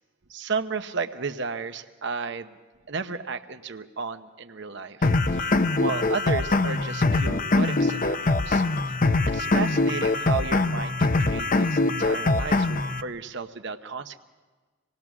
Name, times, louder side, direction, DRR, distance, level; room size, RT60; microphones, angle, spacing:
voice 1, 0.3-2.6 2.9-5.5 5.8-8.6 9.3-14.2, right 4 dB, 60° right, 8 dB, 0.9 m, -33 dB
sound 1, 5.0-13.0, left 2 dB, 40° left, 0.6 m, -23 dB
26.5 x 19.0 x 6.1 m, 1.3 s
head